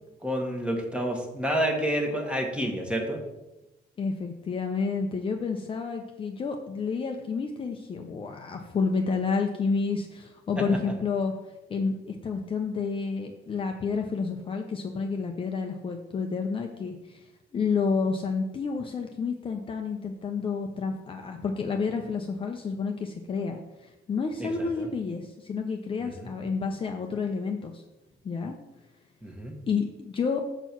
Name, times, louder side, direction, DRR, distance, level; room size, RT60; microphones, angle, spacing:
voice 1, 0.2-3.2 24.4-24.9 26.0-26.3 29.2-29.6, equal, 5° right, 2 dB, 1.3 m, -29 dB
voice 2, 4.0-11.3 11.7-27.8 28.2-28.5 29.7-30.4, left 5 dB, 30° left, 3 dB, 0.6 m, -30 dB
6.9 x 4.5 x 5.9 m, 0.98 s
cardioid pair, 140°, 18 cm